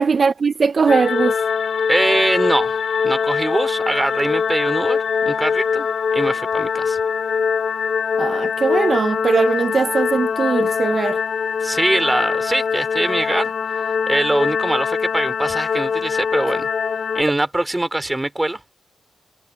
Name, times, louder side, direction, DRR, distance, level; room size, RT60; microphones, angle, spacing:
voice 1, 0.0-1.4 8.2-11.2, right 5 dB, 35° right, 0.4 m, -19 dB
sound 1, 0.9-17.2, left 6 dB, 45° left, 0.5 m, -22 dB
voice 2, 1.9-2.8 3.0-7.0 11.6-16.7 17.1-18.6, right 1 dB, 10° right, 3.1 m, -22 dB
wide cardioid pair, 145°, 0 cm